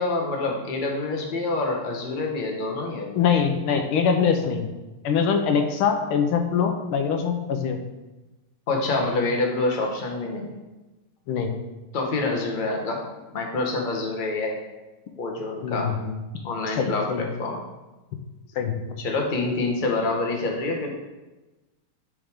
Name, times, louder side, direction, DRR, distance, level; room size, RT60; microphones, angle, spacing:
voice 1, 0.0-3.2 8.7-10.6 11.9-13.0 13.3-14.6 15.2-15.9 16.4-17.6 19.0-20.9, left 3 dB, 40° left, 1 dB, 0.7 m, -26 dB
voice 2, 3.2-4.7 5.0-7.8 11.3-11.6 15.6-16.1 16.8-17.3 18.6-18.8, left 6 dB, 80° left, 5 dB, 1.5 m, -23 dB
8.9 x 4.8 x 3.5 m, 1.1 s
omnidirectional pair, 2.4 m